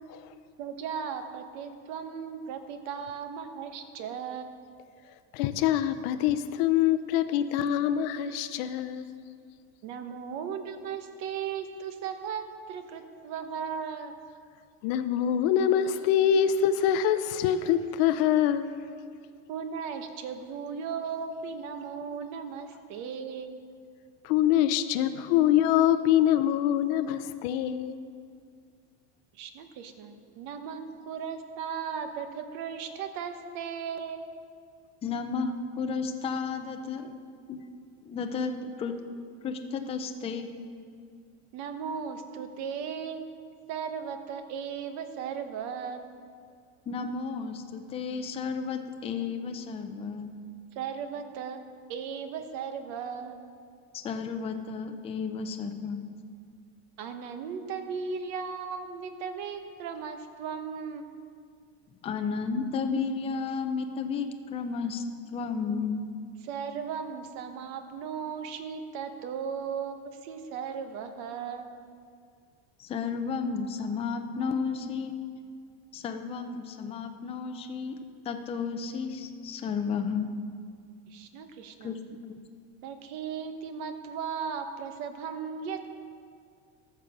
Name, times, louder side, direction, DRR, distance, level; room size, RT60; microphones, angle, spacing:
voice 1, 0.6-4.5 9.8-14.1 19.5-23.6 29.4-34.3 41.5-43.3 43.7-46.0 50.7-51.6 51.9-53.4 57.0-61.1 66.4-71.7 81.1-81.9 82.8-85.9, right 6 dB, 55° right, 8 dB, 1.1 m, -36 dB
voice 2, 5.3-9.1 14.8-18.7 24.2-28.0, left 10 dB, 60° left, 10 dB, 0.6 m, -25 dB
voice 3, 35.0-37.1 37.5-37.6 38.1-39.0 39.4-40.5 46.9-50.4 53.9-56.0 62.0-65.0 65.3-66.1 72.8-75.1 75.9-78.0 78.2-80.4 81.8-82.0, left 5 dB, 20° left, 6 dB, 0.5 m, -32 dB
13.5 x 6.9 x 6.0 m, 2.2 s
cardioid pair, 160°, 33 cm